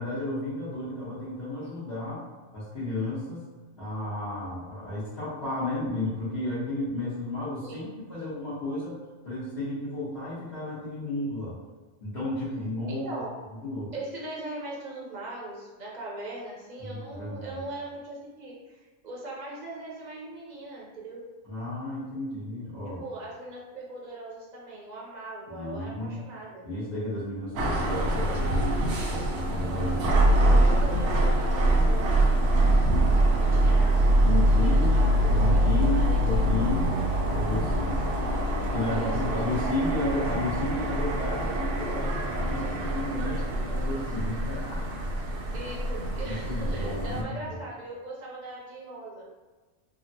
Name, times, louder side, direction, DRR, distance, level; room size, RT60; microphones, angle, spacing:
voice 1, 0.0-2.3 2.5-3.4 3.8-9.0 9.2-11.6 12.0-13.2 13.6-13.9 16.8-17.6 21.4-23.0 25.5-26.2 26.6-30.3 33.4-33.7 34.2-35.0 35.3-36.9 37.3-38.0 38.7-45.0 46.2-47.6, left 1 dB, 55° left, -14 dB, 1.2 m, -33 dB
voice 2, 7.6-8.0 12.9-13.4 13.9-21.3 23.0-26.6 30.3-32.2 33.4-34.0 34.6-36.7 38.9-39.8 45.5-49.3, right 2 dB, 40° right, -5 dB, 0.7 m, -40 dB
sound 1, 27.6-47.2, right 1 dB, 70° right, 0.8 m, -24 dB
3.4 x 2.1 x 2.6 m, 1.3 s
omnidirectional pair, 1.3 m